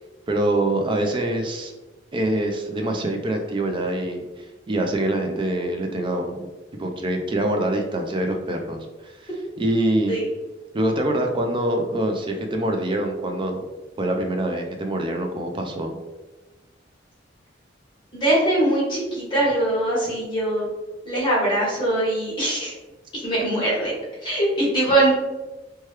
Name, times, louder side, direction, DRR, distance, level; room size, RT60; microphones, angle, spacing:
voice 1, 0.3-1.7 2.1-9.3 9.6-10.2 10.7-13.6 14.0-16.0, right 1 dB, 25° right, 3 dB, 0.4 m, -25 dB
voice 2, 18.1-20.7 21.0-22.7 23.1-23.9 24.2-25.1, right 1 dB, 25° left, -7 dB, 1.3 m, -22 dB
3.0 x 2.2 x 3.1 m, 1.1 s
head